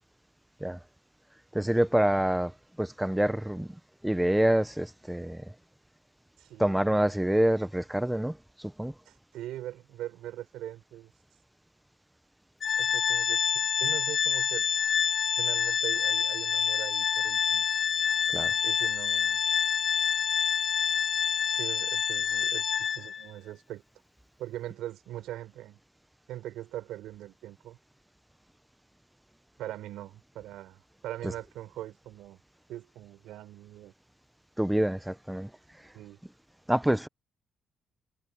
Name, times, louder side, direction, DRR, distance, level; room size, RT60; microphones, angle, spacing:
voice 1, 1.5-5.5 6.6-8.9 18.3-18.6 34.6-35.9 36.7-37.1, right 1 dB, 5° right, 0.7 m, -27 dB
voice 2, 6.4-6.8 9.1-11.1 12.8-14.7 15.4-17.7 18.6-19.4 21.5-23.8 24.4-25.8 26.3-27.8 29.6-32.4 32.7-33.9 35.9-36.2, right 13 dB, 85° right, 5.3 m, -41 dB
Organ, 12.6-23.3, left 7 dB, 55° left, 0.9 m, -27 dB
cardioid pair, 90°, 0 cm